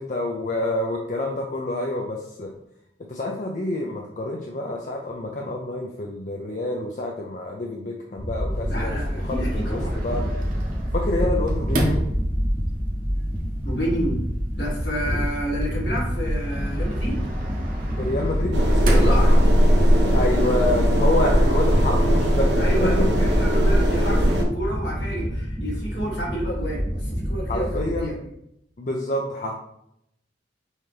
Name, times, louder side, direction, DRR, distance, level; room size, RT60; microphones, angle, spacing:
voice 1, 0.0-2.5 3.1-10.3 10.9-12.0 15.1-15.2 17.8-19.2 20.0-23.1 27.5-28.1 28.8-29.5, left 1 dB, 45° left, -1 dB, 0.5 m, -28 dB
sound 1, 8.2-28.0, equal, 5° right, 0.7 m, -28 dB
Sliding door, 8.5-20.0, equal, 50° right, 1.0 m, -32 dB
voice 2, 8.7-10.2 13.6-14.2 14.6-17.2 18.9-19.4 21.2-21.6 22.6-28.3, equal, 65° left, -4 dB, 1.8 m, -30 dB
sound 2, 18.5-24.4, equal, 75° right, 0.8 m, -19 dB
5.5 x 2.9 x 3.3 m, 0.76 s
head